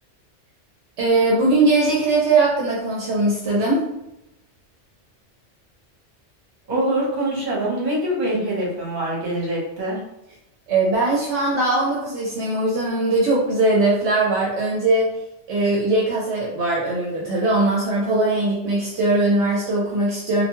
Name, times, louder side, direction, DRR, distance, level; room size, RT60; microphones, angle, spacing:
voice 1, 1.0-3.8 10.7-15.1 15.5-20.4, right 2 dB, 70° right, -5 dB, 0.9 m, -20 dB
voice 2, 6.7-10.0, right 1 dB, 45° right, -5 dB, 1.0 m, -24 dB
2.4 x 2.2 x 2.9 m, 0.87 s
omnidirectional pair, 1.2 m